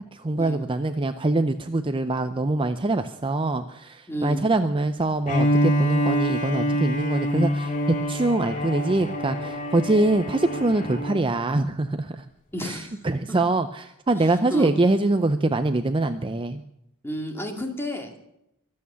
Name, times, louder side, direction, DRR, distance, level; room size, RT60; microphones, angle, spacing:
voice 1, 0.1-12.2 12.6-16.6, right 2 dB, 25° right, 9 dB, 0.6 m, -24 dB
voice 2, 4.1-4.4 12.5-13.0 13.3-13.4 14.5-14.7 17.0-18.1, equal, 10° left, 3 dB, 2.5 m, -31 dB
Bowed string instrument, 5.2-11.3, equal, 35° left, 2.3 m, -26 dB
23.5 x 8.7 x 6.9 m, 0.81 s
head